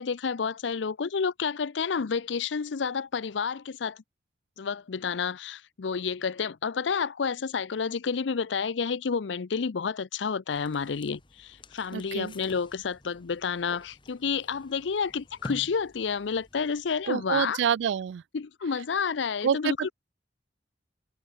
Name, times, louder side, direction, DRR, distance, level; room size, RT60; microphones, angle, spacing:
voice 1, 0.0-4.0 4.6-17.6 18.3-19.9, left 5 dB, 80° left, 0.6 m, -30 dB
sound 1, 10.5-17.1, left 1 dB, 25° left, 2.0 m, -49 dB
voice 2, 11.9-12.3 17.1-18.2 19.4-19.9, right 8 dB, 75° right, 0.3 m, -27 dB
head